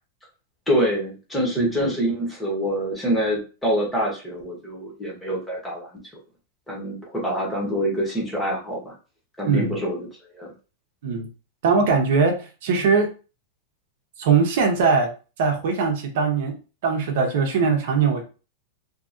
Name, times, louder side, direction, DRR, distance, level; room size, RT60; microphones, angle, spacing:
voice 1, 0.7-5.9 6.7-8.9 9.4-10.1 10.3-10.5, equal, 5° left, -3 dB, 1.0 m, -25 dB
voice 2, 11.6-13.1 14.2-15.1 15.4-16.6 16.8-18.2, right 5 dB, 60° right, 3 dB, 0.7 m, -21 dB
2.7 x 2.6 x 2.4 m, 0.33 s
supercardioid pair, 160°, 0 cm